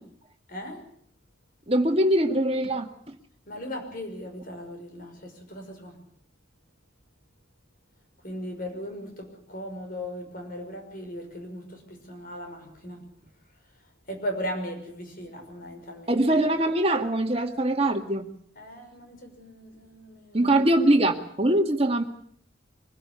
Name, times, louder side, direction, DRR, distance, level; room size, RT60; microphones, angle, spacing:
voice 1, 0.5-0.8 3.5-6.0 8.2-13.0 14.1-16.2 18.6-20.6, equal, 45° left, 4 dB, 5.7 m, -37 dB
voice 2, 1.7-2.9 16.1-18.3 20.3-22.0, right 1 dB, 30° right, 4 dB, 2.1 m, -22 dB
24.0 x 16.0 x 8.2 m, 0.64 s
head